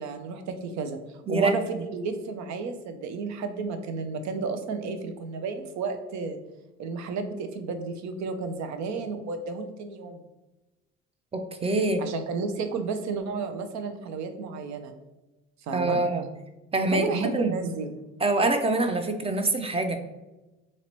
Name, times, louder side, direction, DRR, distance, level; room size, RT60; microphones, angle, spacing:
voice 1, 0.0-6.4 6.8-10.2 12.0-14.9 15.6-16.0 16.9-18.0, right 4 dB, 60° right, 8 dB, 0.6 m, -32 dB
voice 2, 11.3-12.0 15.7-16.3 16.7-17.6 18.2-20.0, right 2 dB, 20° right, 6 dB, 0.5 m, -25 dB
3.0 x 2.8 x 4.5 m, 1.0 s
supercardioid pair, 70°, 31 cm